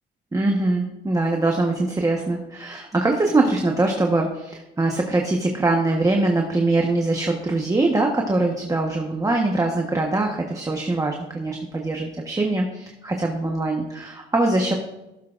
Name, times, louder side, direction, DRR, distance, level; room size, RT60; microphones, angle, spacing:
voice 1, 0.3-14.7, right 2 dB, 15° right, 1 dB, 1.2 m, -22 dB
15.5 x 7.4 x 2.5 m, 0.96 s
cardioid pair, 90°, 20 cm